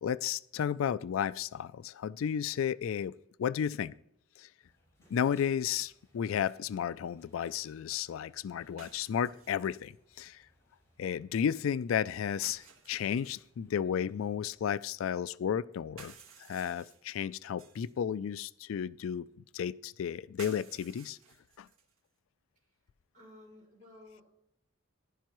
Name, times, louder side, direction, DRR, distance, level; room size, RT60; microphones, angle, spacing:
voice 1, 0.0-3.1 3.4-3.9 4.4-4.5 5.1-10.4 11.0-16.1 16.4-19.3 19.5-21.2 21.6-21.7, left 8 dB, 75° left, 18 dB, 0.3 m, -33 dB
sound 1, 4.6-15.0, equal, 15° left, 5.5 m, -69 dB
sound 2, 5.6-5.7 8.8-10.0 12.4-13.5 15.8-17.9 20.4-22.0, right 6 dB, 85° right, 1.5 m, -55 dB
voice 2, 23.1-24.2, left 1 dB, 35° right, -2 dB, 5.3 m, -55 dB
15.0 x 11.5 x 3.1 m, 0.72 s
head